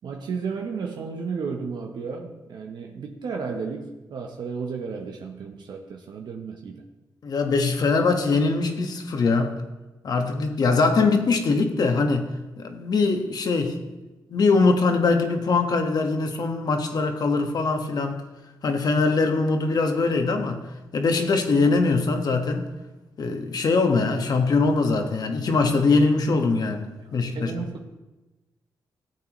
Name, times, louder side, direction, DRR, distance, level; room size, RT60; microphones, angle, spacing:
voice 1, 0.0-6.8 27.0-27.9, right 5 dB, 70° right, 2 dB, 0.9 m, -33 dB
voice 2, 7.2-9.5 10.0-12.3 12.6-13.8 14.3-18.2 18.6-20.6 20.9-22.6 23.2-27.5, left 3 dB, 60° left, 5 dB, 1.3 m, -22 dB
15.0 x 8.3 x 3.0 m, 1.1 s
cardioid pair, 90°, 8 cm